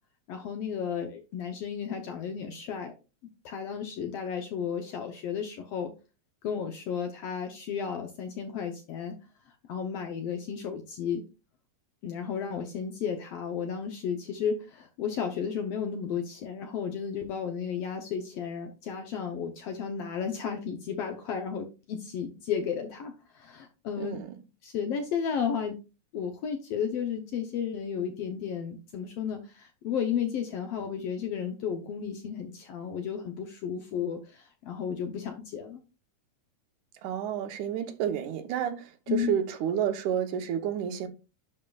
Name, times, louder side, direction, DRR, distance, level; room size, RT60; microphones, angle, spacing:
voice 1, 0.3-2.9 3.4-5.9 6.4-9.2 9.7-11.2 12.0-24.2 24.6-25.7 26.1-35.8 39.1-39.4, left 7 dB, 70° left, 1.5 m, -33 dB
voice 2, 24.0-24.3 37.0-41.1, right 9 dB, 80° right, 2.3 m, -30 dB
11.0 x 5.5 x 2.3 m
omnidirectional pair, 3.5 m